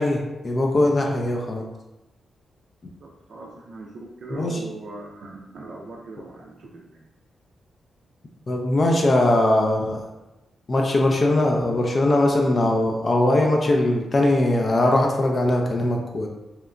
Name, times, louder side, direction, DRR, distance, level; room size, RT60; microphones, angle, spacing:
voice 1, 0.0-1.6 4.3-4.6 8.5-10.0 10.7-16.3, left 1 dB, 40° left, 1 dB, 0.3 m, -20 dB
voice 2, 2.8-6.9, right 2 dB, 70° right, -2 dB, 0.3 m, -39 dB
2.8 x 2.2 x 2.4 m, 0.99 s
cardioid pair, 90°, 0 cm